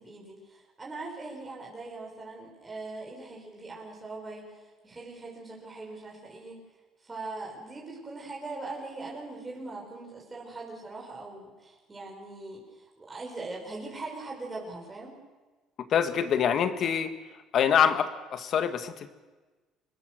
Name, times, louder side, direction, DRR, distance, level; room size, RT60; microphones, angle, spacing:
voice 1, 0.0-6.6 7.0-15.2, right 3 dB, 20° right, -2 dB, 5.9 m, -41 dB
voice 2, 15.9-17.1 17.5-19.1, left 8 dB, 50° left, 9 dB, 1.9 m, -25 dB
25.5 x 20.5 x 6.8 m, 1.3 s
cardioid pair, 110°, 0 cm